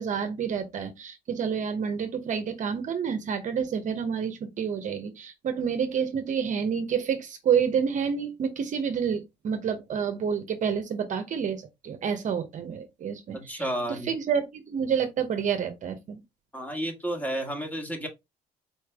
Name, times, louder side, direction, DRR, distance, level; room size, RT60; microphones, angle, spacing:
voice 1, 0.0-16.2, right 7 dB, 50° right, 0.8 m, -29 dB
voice 2, 13.3-14.1 16.5-18.1, right 1 dB, 10° left, 1.5 m, -31 dB
4.4 x 3.2 x 3.4 m
cardioid pair, 110°, 17 cm